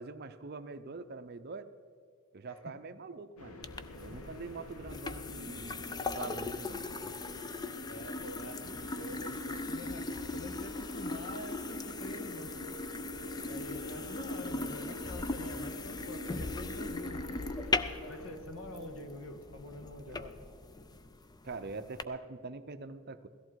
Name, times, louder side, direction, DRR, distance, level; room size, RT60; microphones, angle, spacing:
voice 1, 0.0-1.7 2.3-3.6 4.0-7.1 21.4-23.3, right 4 dB, 45° right, 10 dB, 0.6 m, -44 dB
sound 1, 3.4-18.4, left 3 dB, 85° left, 1.1 m, -49 dB
sound 2, 3.6-22.0, left 3 dB, 20° left, 0.4 m, -39 dB
voice 2, 7.9-8.6 9.0-12.5 13.5-17.2 18.1-20.4, left 1 dB, 65° left, 6 dB, 1.4 m, -46 dB
sound 3, 12.1-19.1, right 1 dB, ahead, 1.2 m, -51 dB
17.0 x 14.0 x 4.7 m, 2.2 s
head